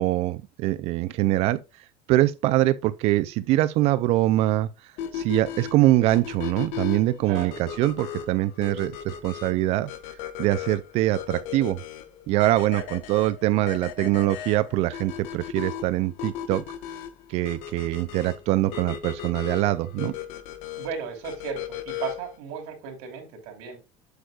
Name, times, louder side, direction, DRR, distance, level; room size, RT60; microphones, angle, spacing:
voice 1, 0.0-1.6 2.1-4.7 5.1-9.9 10.4-11.8 12.3-16.6 17.3-20.1, right 16 dB, 55° right, 0.5 m, -23 dB
sound 1, 5.0-22.4, left 9 dB, 70° left, 1.2 m, -37 dB
voice 2, 7.2-7.6 20.8-23.8, right 7 dB, 75° right, 3.1 m, -35 dB
8.0 x 8.0 x 2.4 m
cardioid pair, 150°, 13 cm